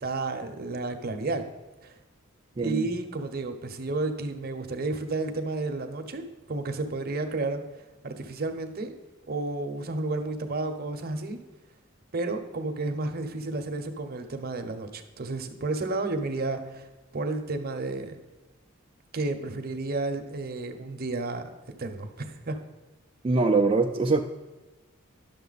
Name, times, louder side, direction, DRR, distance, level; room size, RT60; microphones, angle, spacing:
voice 1, 0.0-1.5 1.8-2.0 2.6-7.6 8.0-9.0 9.2-11.4 12.1-16.9 17.1-18.2 19.1-21.5 21.8-22.6, right 2 dB, 45° right, 6 dB, 0.8 m, -31 dB
voice 2, 2.6-2.9 23.2-24.2, right 3 dB, 30° right, 0 dB, 0.4 m, -23 dB
10.5 x 6.8 x 4.0 m, 1.1 s
head